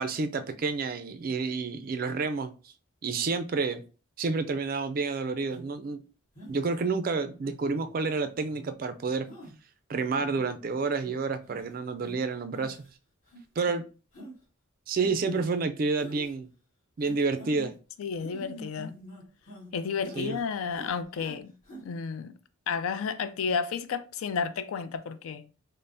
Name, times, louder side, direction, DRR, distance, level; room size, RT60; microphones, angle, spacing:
voice 1, 0.0-2.5 3.0-3.8 4.2-6.0 6.5-9.3 9.9-12.8 13.6-13.8 14.9-16.5 17.0-17.7 20.2-20.4, right 4 dB, 40° right, 0.3 m, -29 dB
sound 1, 5.5-5.7 6.3-6.9 7.4-7.9 8.4-8.7 9.3-9.5 10.0-10.5 11.0-11.1 11.5-11.7 12.0-12.1 12.5-12.9 13.3-13.4 14.1-14.3 15.0-15.5 16.0-16.3 17.0-17.7 18.2-19.7 20.0-20.4 20.7-21.4 21.6-21.8, equal, 40° left, 1.5 m, -45 dB
voice 2, 18.0-18.9 19.7-21.5 21.8-22.3 22.7-25.5, left 6 dB, 75° left, 0.4 m, -32 dB
5.2 x 2.0 x 2.6 m
head